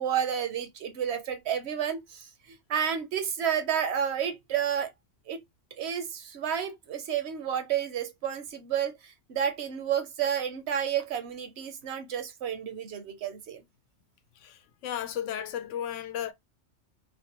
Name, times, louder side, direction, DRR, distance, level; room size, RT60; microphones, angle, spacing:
voice 1, 0.0-4.9 5.3-5.4 5.8-13.6, right 8 dB, 70° right, 0.9 m, -31 dB
voice 2, 14.4-16.3, left 10 dB, 90° left, 0.9 m, -34 dB
3.2 x 2.2 x 2.9 m
omnidirectional pair, 1.2 m